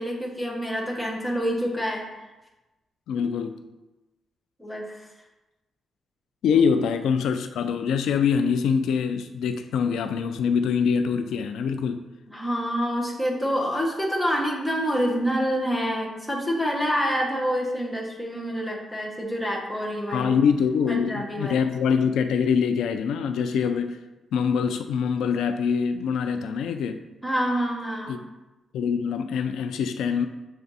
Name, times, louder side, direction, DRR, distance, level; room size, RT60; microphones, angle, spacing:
voice 1, 0.0-2.1 4.6-5.1 12.3-20.3 20.9-21.6 27.2-28.1, equal, 5° left, -2 dB, 1.1 m, -27 dB
voice 2, 3.1-3.6 6.4-12.1 20.1-24.0 24.3-27.0 28.1-28.2 28.7-30.3, left 6 dB, 90° left, 9 dB, 0.3 m, -24 dB
7.0 x 3.3 x 4.1 m, 1.1 s
cardioid pair, 135°, 0 cm